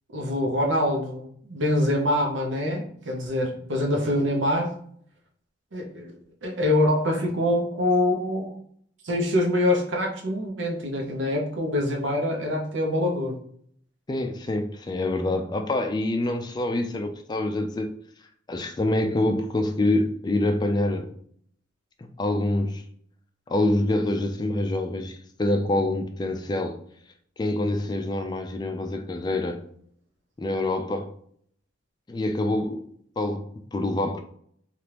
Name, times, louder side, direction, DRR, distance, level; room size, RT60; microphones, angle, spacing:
voice 1, 0.1-4.7 5.7-6.1 6.4-8.5 9.0-13.4, left 1 dB, 80° right, 0.8 m, -25 dB
voice 2, 14.1-17.9 18.5-21.1 22.2-22.8 23.5-26.8 27.4-29.6 30.4-31.1 32.1-32.9 33.2-34.2, left 1 dB, 20° left, 0.3 m, -26 dB
3.3 x 2.4 x 2.9 m
head